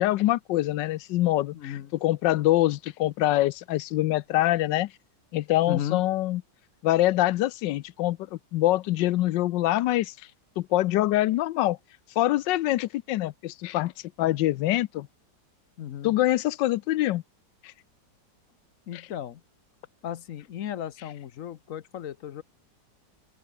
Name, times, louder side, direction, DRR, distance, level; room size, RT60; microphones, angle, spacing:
voice 1, 0.0-4.9 5.3-6.4 6.8-10.1 10.6-11.8 12.2-13.9 14.2-15.1 16.0-17.2 18.9-19.0, left 15 dB, 80° left, 1.3 m, -24 dB
voice 2, 1.5-1.9 5.7-6.0 15.8-16.1 18.9-19.4 20.0-22.4, left 10 dB, 60° left, 1.0 m, -35 dB
open air
omnidirectional pair, 2.0 m